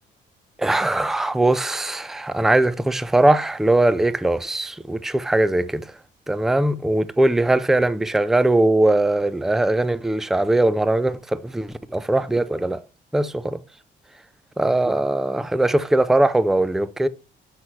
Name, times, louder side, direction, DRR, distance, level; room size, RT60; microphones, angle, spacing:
voice 1, 0.6-5.9 6.3-12.8 13.1-13.6 14.6-17.1, right 2 dB, ahead, 0.4 m, -20 dB
5.8 x 5.7 x 3.2 m
cardioid pair, 90°, 20 cm